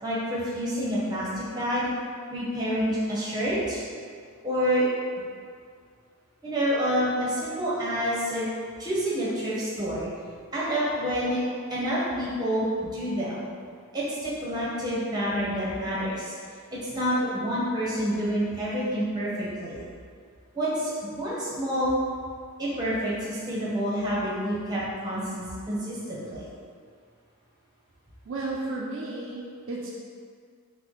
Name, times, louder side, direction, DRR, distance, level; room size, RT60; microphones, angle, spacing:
voice 1, 0.0-1.9 2.3-3.8 4.4-4.9 6.4-8.5 8.8-10.1 10.5-11.4 11.7-13.4 13.9-16.3 16.7-19.8 20.5-22.0 22.6-26.5, equal, 20° right, -8 dB, 0.8 m, -28 dB
voice 2, 28.2-29.9, right 2 dB, 60° right, -4 dB, 0.4 m, -33 dB
3.9 x 2.1 x 3.0 m, 2.1 s
head